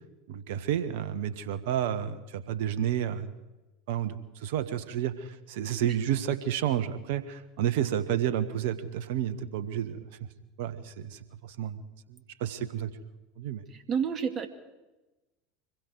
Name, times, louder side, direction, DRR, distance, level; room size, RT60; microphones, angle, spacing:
voice 1, 0.3-3.3 3.9-10.0 10.6-11.8 12.1-12.9 13.4-13.6, right 10 dB, 65° right, 13 dB, 1.4 m, -31 dB
voice 2, 13.7-14.5, right 7 dB, 40° right, 9 dB, 2.2 m, -30 dB
26.0 x 21.5 x 4.8 m, 1.1 s
figure-of-eight pair, 75°, 0 cm